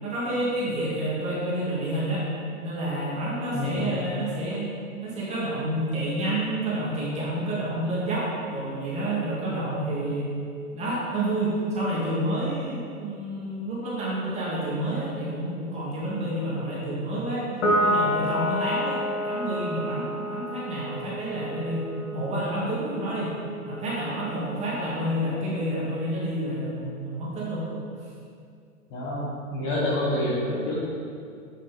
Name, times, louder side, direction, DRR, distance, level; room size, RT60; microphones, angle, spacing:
voice 1, 0.0-2.3 2.6-4.7 5.0-10.3 10.7-17.5 17.8-23.3 23.6-27.7, right 1 dB, 15° right, -7 dB, 2.1 m, -29 dB
voice 2, 3.5-3.9 28.9-30.8, left 1 dB, 25° left, -5 dB, 1.7 m, -27 dB
Piano, 17.6-24.3, equal, 55° left, 2.2 m, -29 dB
8.9 x 6.1 x 5.3 m, 2.3 s
hypercardioid pair, 145°, 44 cm